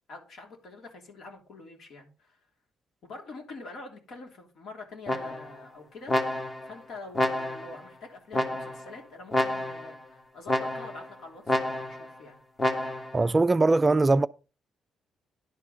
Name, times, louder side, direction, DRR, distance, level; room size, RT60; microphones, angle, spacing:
voice 1, 0.1-2.4 3.0-6.1 6.6-12.4, left 3 dB, 65° left, 3.0 m, -45 dB
sound 1, 5.1-5.6 6.1-6.7 7.1-7.8 8.3-8.9 9.3-10.0 10.5-11.1 11.5-12.1 12.6-13.2, left 1 dB, 25° left, 1.5 m, -29 dB
voice 2, 13.1-14.3, right 3 dB, 25° right, 0.3 m, -21 dB
10.5 x 4.8 x 5.7 m
cardioid pair, 90°, 0 cm